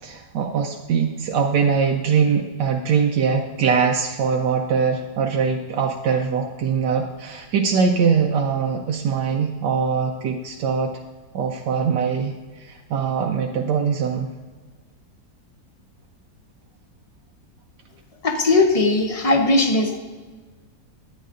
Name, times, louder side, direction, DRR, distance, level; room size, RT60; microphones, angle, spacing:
voice 1, 0.0-10.9 11.3-14.3, right 6 dB, 85° right, 1 dB, 1.3 m, -22 dB
voice 2, 18.2-20.0, left 2 dB, 35° left, 4 dB, 0.6 m, -18 dB
11.0 x 9.2 x 2.5 m, 1.4 s
omnidirectional pair, 1.8 m